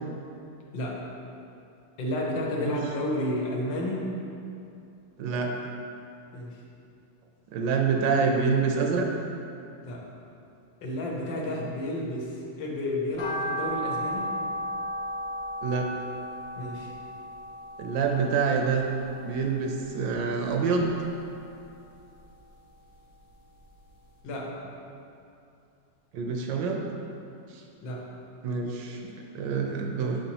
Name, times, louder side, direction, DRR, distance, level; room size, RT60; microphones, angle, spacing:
voice 1, 0.7-1.1 2.0-4.1 6.3-6.6 9.8-10.1 10.8-14.3 16.6-16.9 24.2-24.6 27.8-28.1, left 1 dB, 80° left, -2 dB, 1.6 m, -31 dB
voice 2, 5.2-5.5 7.5-9.1 11.6-11.7 15.6-15.9 17.8-18.9 19.2-20.9 26.1-26.8 27.5-27.6 28.4-30.2, right 5 dB, 75° right, 1 dB, 1.2 m, -26 dB
sound 1, 13.2-19.5 19.8-21.0 21.3-22.8 23.1-23.2 23.7-23.8 24.0-24.1, equal, 40° left, 0.6 m, -35 dB
6.0 x 5.8 x 2.9 m, 2.6 s
omnidirectional pair, 2.0 m